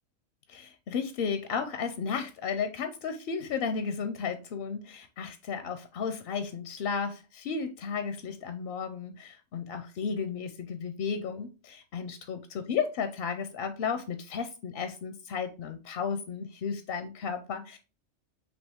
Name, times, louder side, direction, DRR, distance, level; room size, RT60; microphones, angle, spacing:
voice 1, 0.5-17.8, left 6 dB, 65° left, 9 dB, 0.6 m, -34 dB
5.3 x 2.9 x 3.4 m, 0.32 s
omnidirectional pair, 1.3 m